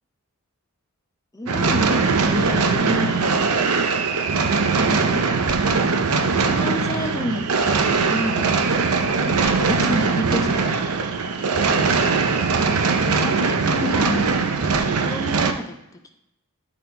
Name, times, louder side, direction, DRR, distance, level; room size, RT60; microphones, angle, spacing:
voice 1, 1.3-3.3 4.2-5.2 6.4-7.4 7.7-8.5 9.2-11.9 13.1-14.2 15.0-15.7, left 1 dB, 15° left, 5 dB, 0.8 m, -30 dB
sound 1, 1.5-15.5, right 4 dB, 80° right, 0.7 m, -21 dB
10.0 x 4.1 x 4.5 m, 0.84 s
head